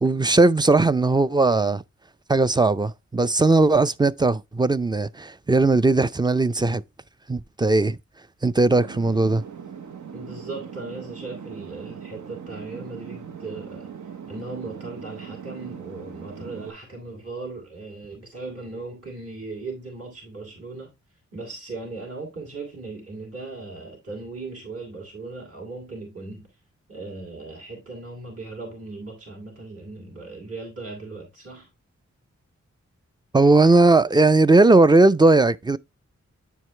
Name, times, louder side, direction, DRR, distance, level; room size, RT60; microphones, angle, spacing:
voice 1, 0.0-1.8 2.3-6.8 7.3-8.0 8.4-9.4 33.3-35.8, right 2 dB, 15° right, 0.3 m, -18 dB
sound 1, 8.7-16.7, right 7 dB, 80° right, 0.8 m, -40 dB
voice 2, 10.1-13.9 14.3-20.9 21.3-26.5 26.9-31.7, right 3 dB, 55° right, 2.8 m, -37 dB
9.0 x 4.7 x 3.2 m
wide cardioid pair, 70°, 29 cm